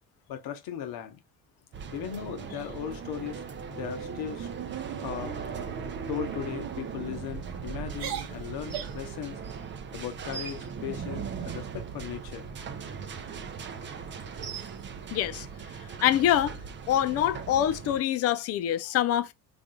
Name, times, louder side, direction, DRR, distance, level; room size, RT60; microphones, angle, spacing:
voice 1, 0.3-1.2 1.9-4.5 5.0-5.4 6.1-9.4 9.9-12.5, left 9 dB, 50° left, 0.9 m, -37 dB
sound 1, 1.7-18.0, right 6 dB, 25° right, 0.5 m, -38 dB
sound 2, 2.1-2.8 3.2-3.4 3.8-4.1 4.5-4.8 5.4-5.8 6.3-6.5 7.2-7.5 7.9-9.1, right 9 dB, 50° right, 0.8 m, -41 dB
voice 2, 15.1-15.5 16.0-16.6 16.9-19.3, left 11 dB, 35° left, 0.4 m, -25 dB
3.5 x 2.5 x 3.8 m
figure-of-eight pair, 55°, 47 cm